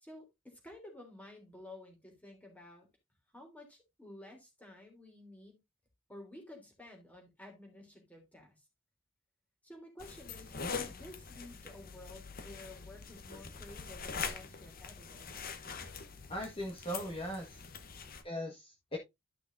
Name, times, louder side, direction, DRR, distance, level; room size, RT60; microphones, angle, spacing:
voice 1, 0.0-2.9 3.3-5.6 6.1-8.5 9.6-15.3, left 1 dB, 10° left, 3.3 m, -52 dB
sound 1, 10.0-18.2, left 5 dB, 50° left, 1.1 m, -43 dB
voice 2, 16.3-17.6 18.2-19.0, equal, 30° left, 1.6 m, -39 dB
12.5 x 6.0 x 2.6 m
head